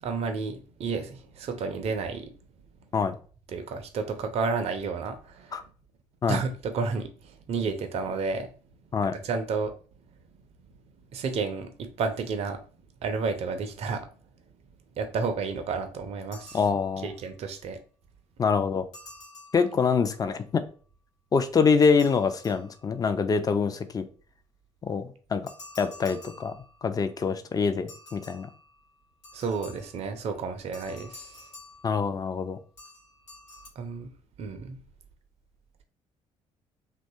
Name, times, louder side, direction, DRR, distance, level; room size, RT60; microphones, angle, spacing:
voice 1, 0.0-2.3 3.5-5.6 6.3-8.5 9.0-9.7 11.1-12.6 13.0-14.1 15.0-16.6 17.0-17.8 29.3-31.5 33.8-34.1 34.4-34.8, right 4 dB, 40° right, 0.4 m, -31 dB
sound 1, 16.3-17.3 18.9-20.2 21.8-23.2 25.5-27.1 27.9-30.1 30.7-32.4 32.8-33.7, left 2 dB, 80° left, 0.8 m, -50 dB
voice 2, 16.5-17.1 18.4-18.8 19.5-20.6 21.3-24.1 24.8-25.4 25.8-26.5 26.8-28.5 31.8-32.6, left 5 dB, 25° left, 0.4 m, -25 dB
2.8 x 2.2 x 2.6 m
figure-of-eight pair, 50°, 16 cm